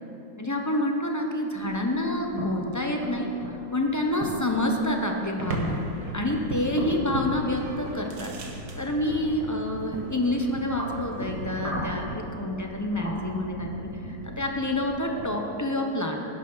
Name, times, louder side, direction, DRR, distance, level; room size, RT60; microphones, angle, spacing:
voice 1, 0.4-3.3 3.7-5.8 6.1-8.3 8.8-16.2, left 1 dB, 15° left, 2 dB, 0.6 m, -28 dB
sound 1, 1.5-15.4, equal, 20° right, 1.8 m, -40 dB
sound 2, 5.4-12.1, right 1 dB, 65° right, 1.9 m, -37 dB
sound 3, 6.3-15.5, equal, 80° left, 3.5 m, -44 dB
11.5 x 10.5 x 5.7 m, 3.0 s
omnidirectional pair, 2.0 m